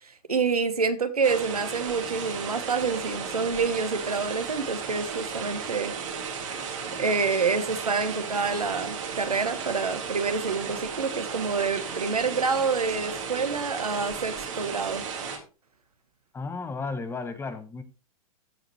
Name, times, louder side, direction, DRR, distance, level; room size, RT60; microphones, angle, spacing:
voice 1, 0.0-6.0 6.5-6.7 7.0-15.1, right 5 dB, 75° right, 10 dB, 1.3 m, -27 dB
sound 1, 1.2-15.4, right 6 dB, 55° right, 2.5 m, -35 dB
voice 2, 16.3-17.8, left 4 dB, 10° left, 11 dB, 1.0 m, -33 dB
15.0 x 5.0 x 3.1 m, 0.33 s
figure-of-eight pair, 100°, 19 cm